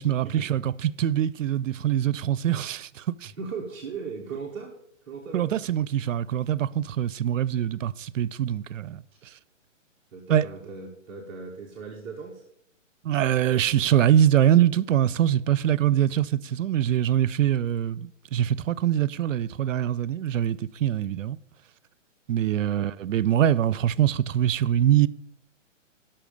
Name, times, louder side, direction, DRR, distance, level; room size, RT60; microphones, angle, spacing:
voice 1, 0.0-3.3 5.3-9.0 10.3-10.5 13.0-21.4 22.3-25.1, right 11 dB, 75° right, 0.5 m, -23 dB
voice 2, 3.4-4.7 5.0-5.7 10.1-12.4, right 5 dB, 10° right, 0.6 m, -38 dB
12.0 x 5.7 x 5.2 m
hypercardioid pair, 165°, 39 cm